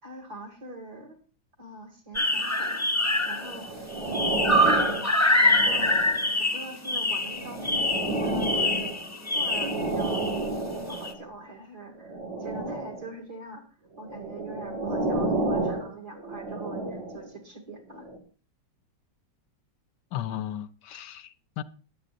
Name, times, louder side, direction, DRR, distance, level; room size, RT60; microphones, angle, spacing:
voice 1, 0.0-1.2 1.6-4.5 5.6-6.0 6.4-7.9 8.2-8.9 9.3-10.4 10.9-13.6 14.0-18.1, right 2 dB, 60° right, 3.2 m, -43 dB
sound 1, 2.1-3.7 3.9-10.4 10.9-11.1, left 1 dB, 10° left, 0.8 m, -25 dB
sound 2, 3.3-6.4 7.1-11.3 12.0-13.1 14.0-17.3 18.0-18.2, right 2 dB, 85° right, 2.7 m, -31 dB
voice 2, 20.1-21.6, left 11 dB, 75° left, 1.2 m, -35 dB
20.5 x 8.8 x 2.6 m
omnidirectional pair, 2.0 m